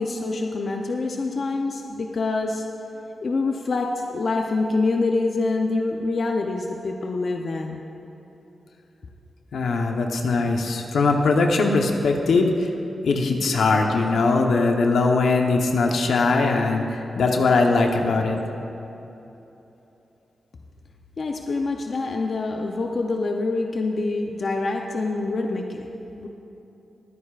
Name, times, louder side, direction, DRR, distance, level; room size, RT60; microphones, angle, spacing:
voice 1, 0.0-2.6 3.2-7.8 21.2-26.3, left 3 dB, 55° left, 2 dB, 0.7 m, -26 dB
voice 2, 9.5-12.7 13.0-18.4, left 3 dB, 80° left, 2 dB, 1.0 m, -21 dB
22.0 x 9.7 x 2.5 m, 3.0 s
cardioid pair, 70°, 0 cm